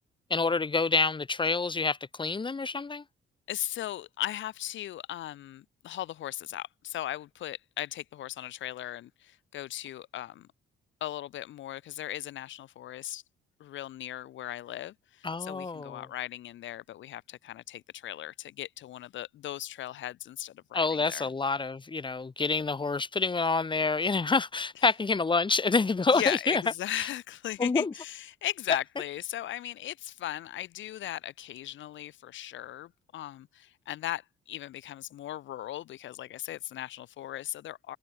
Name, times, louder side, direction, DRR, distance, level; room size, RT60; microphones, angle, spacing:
voice 1, 0.3-3.0 15.2-16.1 20.7-26.6 26.9-27.1 27.6-27.9, left 4 dB, 25° left, 1.4 m, -27 dB
voice 2, 3.5-10.5 11.0-13.2 13.6-21.3 26.1-38.0, left 13 dB, 70° left, 1.1 m, -37 dB
cardioid pair, 90°, 20 cm